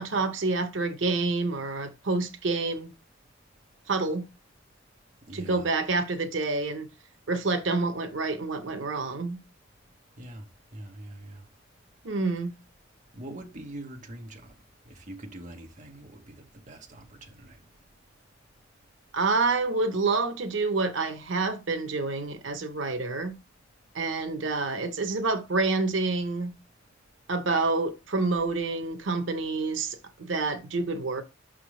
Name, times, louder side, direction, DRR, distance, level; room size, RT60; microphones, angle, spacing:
voice 1, 0.0-2.9 3.9-4.2 5.3-6.9 7.3-9.4 12.0-12.5 19.1-23.3 23.9-26.5 27.3-31.2, right 3 dB, 90° right, 0.9 m, -28 dB
voice 2, 5.2-5.7 7.1-7.3 9.7-12.1 12.9-19.1 26.7-27.3, right 1 dB, 40° right, 1.1 m, -46 dB
6.0 x 3.6 x 4.8 m
head